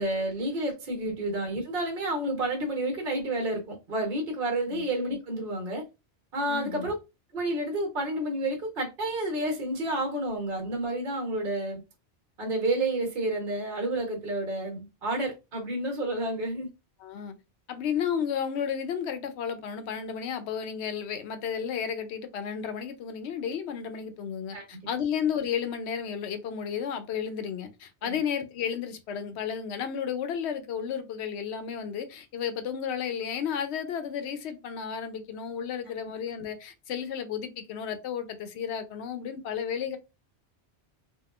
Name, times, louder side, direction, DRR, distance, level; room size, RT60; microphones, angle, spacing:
voice 1, 0.0-5.8 6.3-6.9 7.3-11.8 12.4-16.7 24.5-24.6 28.0-28.2, right 1 dB, 50° right, 1.1 m, -30 dB
voice 2, 6.5-6.9 17.0-17.3 17.7-40.0, left 7 dB, 75° left, 0.8 m, -33 dB
3.5 x 2.3 x 2.3 m
omnidirectional pair, 1.1 m